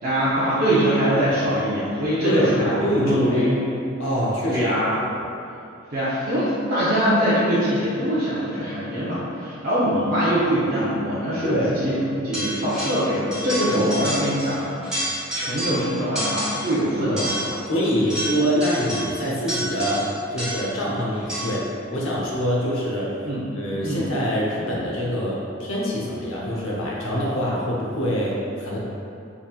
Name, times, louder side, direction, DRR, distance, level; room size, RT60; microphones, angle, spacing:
voice 1, 0.0-3.7 4.5-4.9 5.9-17.6 23.2-23.4 23.8-24.1, equal, 45° right, -11 dB, 0.7 m, -23 dB
voice 2, 2.2-3.6 4.0-4.7 5.0-5.2 11.4-11.7 13.7-14.2 17.1-17.2 17.7-23.2 23.6-28.8, equal, 75° left, -4 dB, 0.8 m, -25 dB
sound 1, 12.3-13.1 13.3-14.6 14.8-15.8 16.2-16.8 17.2-20.8 21.3-21.7, equal, 5° right, 1.3 m, -29 dB
4.1 x 3.6 x 2.3 m, 2.7 s
head